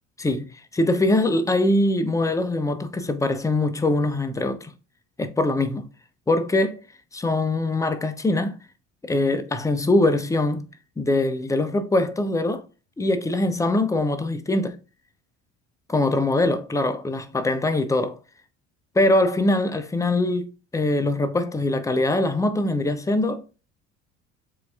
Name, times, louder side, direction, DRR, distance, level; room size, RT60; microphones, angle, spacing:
voice 1, 0.2-4.7 5.2-5.9 6.3-6.8 7.1-8.6 9.0-10.7 11.0-12.6 13.0-14.8 15.9-18.2 18.9-23.4, left 2 dB, 10° left, 0.6 m, -22 dB
7.5 x 2.7 x 2.3 m
hypercardioid pair, 75°, 35 cm